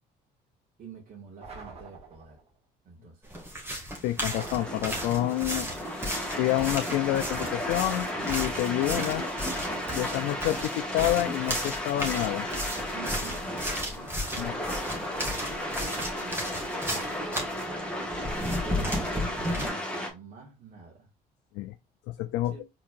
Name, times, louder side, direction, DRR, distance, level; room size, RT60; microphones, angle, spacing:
voice 1, 0.8-2.4 2.8-3.3 12.9-18.0 18.6-21.1 22.4-22.7, right 5 dB, 55° right, 1.8 m, -47 dB
sound 1, 1.4-2.5 4.3-5.4 7.1-8.3 9.4-10.6, right 3 dB, 40° right, 1.8 m, -46 dB
sound 2, 3.3-17.6 18.1-19.7, equal, 15° right, 1.9 m, -34 dB
voice 2, 4.0-5.7 6.4-9.2 9.9-12.5 14.4-14.6 21.6-21.7 22.1-22.5, left 15 dB, 90° left, 0.4 m, -28 dB
sound 3, 4.4-20.1, equal, 5° left, 1.4 m, -34 dB
4.6 x 3.7 x 2.5 m
cardioid pair, 110°, 17 cm